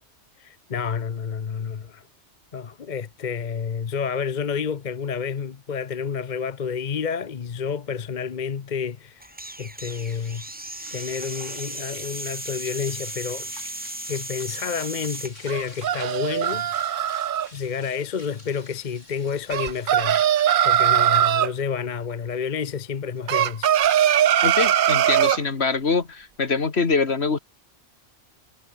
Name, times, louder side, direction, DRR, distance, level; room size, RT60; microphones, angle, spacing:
voice 1, 0.4-2.0 2.5-10.4 10.9-13.5 14.1-16.7 17.5-20.2 20.6-23.8, left 6 dB, 40° left, 0.9 m, -30 dB
sound 1, 9.2-15.3, right 1 dB, 10° right, 0.7 m, -36 dB
sound 2, 9.9-23.4, left 1 dB, 85° left, 8.5 m, -47 dB
sound 3, 15.5-17.5 19.5-21.5 23.3-25.4, right 10 dB, 55° right, 0.6 m, -20 dB
voice 2, 24.4-27.4, left 4 dB, 60° left, 2.1 m, -24 dB
omnidirectional pair, 1.2 m